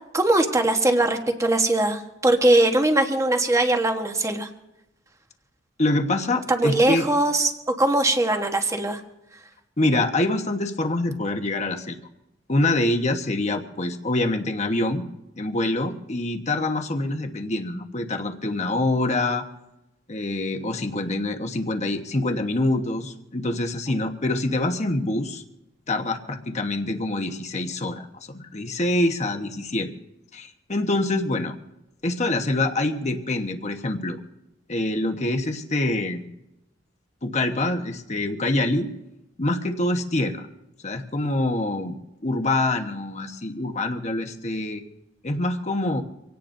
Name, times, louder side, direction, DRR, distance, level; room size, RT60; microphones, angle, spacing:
voice 1, 0.1-4.5 6.5-9.0, right 2 dB, 15° right, 5 dB, 1.2 m, -21 dB
voice 2, 5.8-7.1 9.8-12.0 12.5-15.0 15.3-19.5 20.1-25.4 25.9-29.9 30.3-31.5 32.0-34.2 34.7-36.2 37.2-38.9 39.4-40.5 40.8-42.0 42.2-44.8 45.2-46.0, left 2 dB, 40° left, 5 dB, 1.2 m, -25 dB
25.0 x 17.5 x 2.7 m, 0.92 s
head